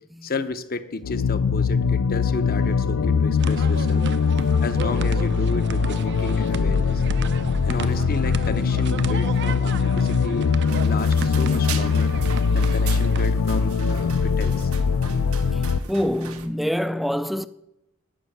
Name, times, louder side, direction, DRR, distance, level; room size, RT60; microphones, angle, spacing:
voice 1, 0.2-4.0 4.6-7.0 7.6-10.5 10.8-12.1 12.5-14.7, left 3 dB, 45° left, 0.8 m, -32 dB
sound 1, 1.0-15.8, left 5 dB, 90° left, 0.5 m, -22 dB
sound 2, 3.4-13.2, right 5 dB, 55° right, 0.6 m, -35 dB
sound 3, 10.7-16.5, right 7 dB, 80° right, 1.1 m, -38 dB
voice 2, 15.9-17.5, equal, ahead, 0.3 m, -25 dB
11.5 x 6.4 x 9.2 m
head